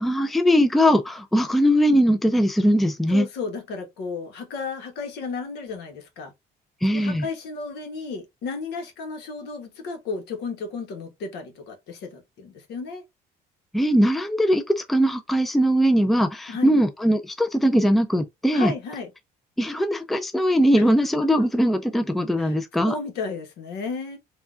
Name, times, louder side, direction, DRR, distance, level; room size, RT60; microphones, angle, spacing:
voice 1, 0.0-3.3 6.8-7.3 13.7-18.7 19.6-22.9, equal, ahead, 0.4 m, -20 dB
voice 2, 3.1-6.3 6.9-13.0 16.5-16.7 18.5-19.1 22.4-24.2, left 4 dB, 75° left, 1.1 m, -33 dB
3.6 x 2.3 x 2.4 m
cardioid pair, 110°, 17 cm